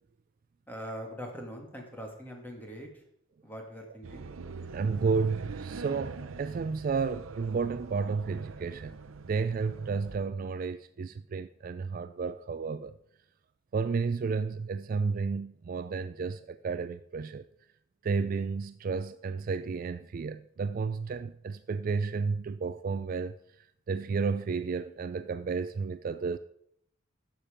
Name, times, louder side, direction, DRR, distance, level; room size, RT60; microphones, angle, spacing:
voice 1, 0.7-3.0 3.4-4.3, equal, 10° left, 2.0 m, -42 dB
sound 1, 4.0-10.2, right 4 dB, 90° right, 0.6 m, -43 dB
voice 2, 4.7-8.9 9.2-12.9 13.7-17.4 18.0-23.3 23.9-26.4, right 5 dB, 45° right, 0.3 m, -32 dB
11.0 x 7.4 x 5.0 m
head